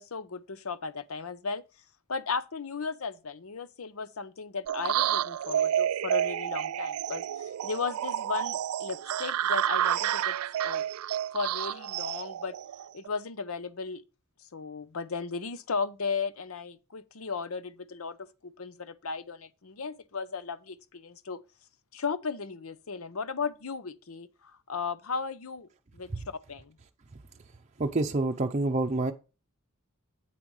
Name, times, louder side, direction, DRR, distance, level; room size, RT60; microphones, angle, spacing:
voice 1, 0.0-1.6 2.1-10.3 10.6-10.8 11.3-12.5 12.9-14.0 14.5-21.4 21.9-26.8, left 5 dB, 75° left, 0.8 m, -36 dB
sound 1, 4.7-13.1, right 10 dB, 90° right, 0.3 m, -30 dB
voice 2, 27.8-29.1, right 2 dB, 35° right, 0.6 m, -27 dB
8.9 x 8.6 x 3.2 m
head